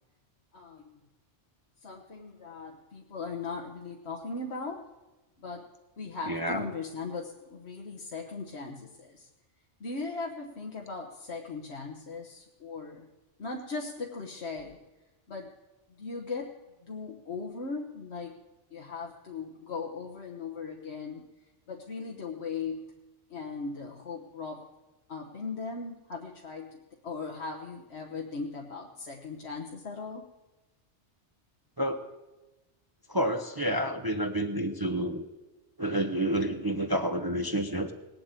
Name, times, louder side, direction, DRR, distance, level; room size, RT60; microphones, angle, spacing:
voice 1, 0.5-1.0 1.8-4.8 5.4-5.7 6.0-9.3 9.8-13.1 13.4-14.8 15.3-15.5 16.0-16.6 16.8-18.4 18.7-21.3 21.7-22.8 23.3-24.6 25.1-30.2, left 4 dB, 70° left, 1 dB, 1.4 m, -38 dB
voice 2, 6.3-6.7 31.8-32.0 33.1-35.2 35.8-37.9, right 1 dB, 20° right, 6 dB, 0.8 m, -29 dB
19.5 x 7.9 x 8.9 m, 1.1 s
omnidirectional pair, 1.2 m